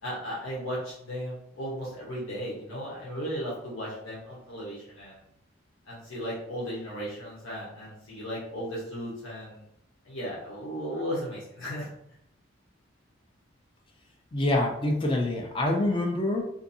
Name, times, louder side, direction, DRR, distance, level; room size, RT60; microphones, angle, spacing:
voice 1, 0.0-5.2 5.9-9.7 10.0-11.9, equal, 85° left, -7 dB, 0.9 m, -36 dB
voice 2, 14.3-16.5, left 1 dB, 25° left, 1 dB, 0.3 m, -26 dB
2.6 x 2.5 x 2.6 m, 0.74 s
head